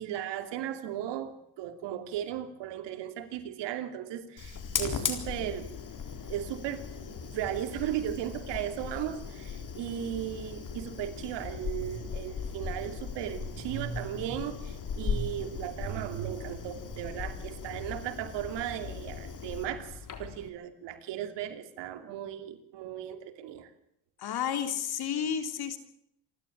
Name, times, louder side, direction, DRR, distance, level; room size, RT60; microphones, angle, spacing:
voice 1, 0.0-5.7 6.3-23.7, right 11 dB, 85° right, 9 dB, 2.9 m, -36 dB
Fire, 4.4-20.5, left 6 dB, 50° left, 3.9 m, -38 dB
voice 2, 24.2-25.8, left 8 dB, 65° left, 9 dB, 3.5 m, -31 dB
27.5 x 13.0 x 8.5 m, 0.74 s
cardioid pair, 95°, 41 cm